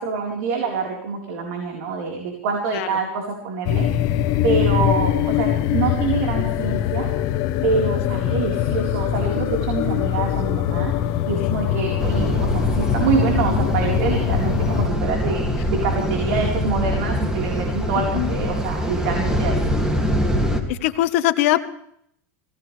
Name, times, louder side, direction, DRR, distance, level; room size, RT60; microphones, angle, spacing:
voice 1, 0.0-3.9 4.4-7.1 7.6-19.7, right 5 dB, 75° right, 1 dB, 4.3 m, -26 dB
sound 1, 3.6-14.9, left 11 dB, 50° left, 1.0 m, -22 dB
sound 2, 12.0-20.6, equal, 10° right, 2.5 m, -23 dB
voice 2, 18.0-18.3 20.7-21.6, left 15 dB, 70° left, 11 dB, 1.4 m, -21 dB
24.0 x 17.5 x 3.4 m, 0.70 s
supercardioid pair, 135°, 7 cm